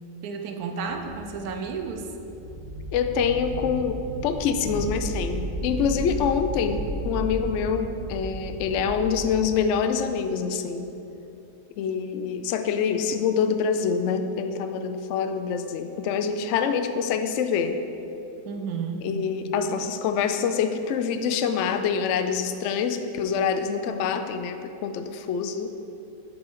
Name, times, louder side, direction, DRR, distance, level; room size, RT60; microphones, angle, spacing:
voice 1, 0.2-2.1 18.4-19.1, right 5 dB, 70° right, 4 dB, 1.1 m, -32 dB
sound 1, 0.8-9.5, right 1 dB, 40° right, 1.0 m, -34 dB
voice 2, 2.9-10.9 11.8-17.8 19.0-25.7, left 6 dB, 85° left, 8 dB, 0.6 m, -26 dB
8.4 x 5.4 x 4.7 m, 2.9 s
omnidirectional pair, 1.8 m